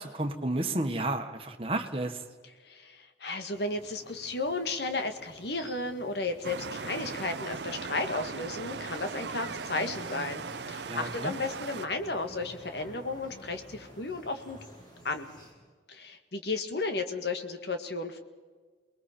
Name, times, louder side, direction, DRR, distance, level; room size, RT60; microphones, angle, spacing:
voice 1, 0.0-2.2 10.8-11.3, right 2 dB, 30° right, 4 dB, 1.5 m, -32 dB
voice 2, 2.6-14.6 15.0-15.3 15.9-18.2, left 3 dB, 70° left, 7 dB, 1.8 m, -34 dB
sound 1, 3.5-15.5, equal, 25° left, 5.1 m, -51 dB
sound 2, 6.4-11.9, right 5 dB, 75° right, 0.7 m, -38 dB
28.0 x 20.5 x 4.5 m, 1.5 s
head